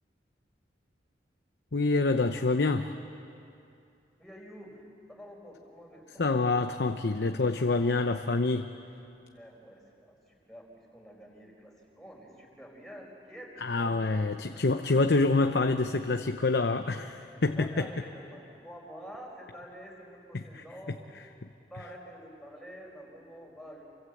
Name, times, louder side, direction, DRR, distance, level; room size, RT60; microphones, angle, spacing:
voice 1, 1.7-2.9 6.2-8.7 13.6-17.9 20.3-20.6, left 3 dB, 75° left, 7 dB, 0.8 m, -26 dB
voice 2, 4.2-4.8 5.1-6.4 9.3-14.2 14.5-14.6 17.2-21.1 21.5-23.9, equal, ahead, -2 dB, 4.8 m, -48 dB
28.0 x 24.5 x 7.9 m, 2.6 s
head